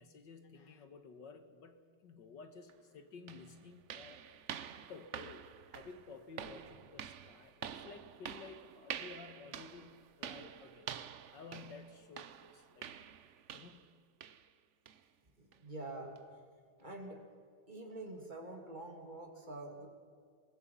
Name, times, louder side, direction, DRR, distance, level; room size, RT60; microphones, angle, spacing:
voice 1, 0.0-4.2 4.8-10.9 11.3-12.9 13.5-13.9, left 4 dB, 90° left, 8 dB, 2.3 m, -53 dB
sound 1, 2.7-2.8 3.3-13.9 14.2-14.5 14.9-15.0 15.5-15.6 16.2-16.3, right 8 dB, 55° right, 0.9 m, -48 dB
voice 2, 15.4-16.2 16.8-17.2 17.7-19.9, right 2 dB, 25° right, 2 dB, 3.0 m, -46 dB
26.5 x 21.5 x 5.6 m, 2.1 s
omnidirectional pair, 1.9 m